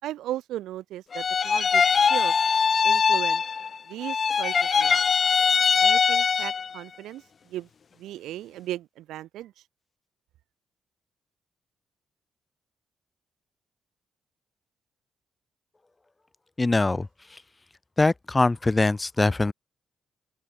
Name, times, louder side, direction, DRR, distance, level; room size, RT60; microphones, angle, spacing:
voice 1, 0.0-1.8 2.1-2.4 2.8-3.4 3.9-5.0 5.8-7.2 7.5-7.7 8.0-9.5, right 14 dB, 85° right, 4.4 m, -36 dB
sound 1, 1.1-3.8 4.0-6.8, left 6 dB, 50° left, 0.6 m, -22 dB
voice 2, 16.6-17.1 18.0-19.5, left 2 dB, 20° left, 6.3 m, -22 dB
open air
cardioid pair, 70°, 0 cm